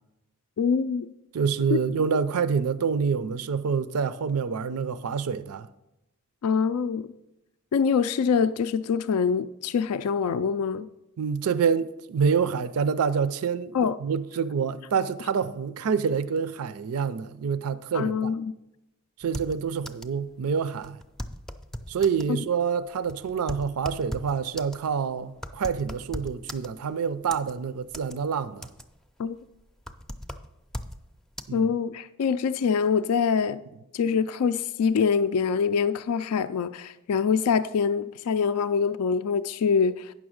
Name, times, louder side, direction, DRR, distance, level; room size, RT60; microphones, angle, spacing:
voice 1, 0.6-1.1 6.4-7.1 7.7-10.9 13.7-14.0 17.9-18.5 29.2-29.4 31.5-33.6 33.9-40.1, left 6 dB, 75° left, 0.3 m, -24 dB
voice 2, 1.3-5.7 11.2-18.3 19.2-21.0 21.9-28.7 31.5-31.7, right 6 dB, 70° right, 0.4 m, -27 dB
sound 1, 19.2-20.2 20.5-20.6 20.8-22.3 22.9-26.9 27.3-28.2 28.5-29.1 29.4-31.0 31.4-31.5, equal, ahead, 0.4 m, -38 dB
9.3 x 6.1 x 6.3 m
head